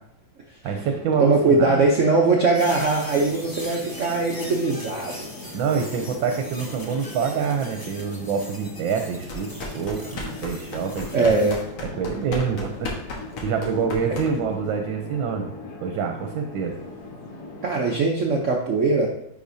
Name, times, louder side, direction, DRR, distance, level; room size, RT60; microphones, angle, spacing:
voice 1, 0.6-1.8 5.5-11.5 11.8-12.9 13.4-15.5 15.8-16.8, right 6 dB, 80° right, 4 dB, 1.4 m, -26 dB
sound 1, 0.7-18.0, left 3 dB, 60° left, 1.7 m, -40 dB
voice 2, 1.2-5.2 11.1-11.6 17.6-19.1, right 3 dB, 60° right, -1 dB, 0.8 m, -21 dB
sound 2, 2.5-11.6, left 1 dB, 25° left, 0.4 m, -41 dB
sound 3, 9.3-14.6, left 2 dB, 80° left, 2.0 m, -35 dB
9.9 x 5.1 x 2.7 m, 0.75 s
omnidirectional pair, 2.1 m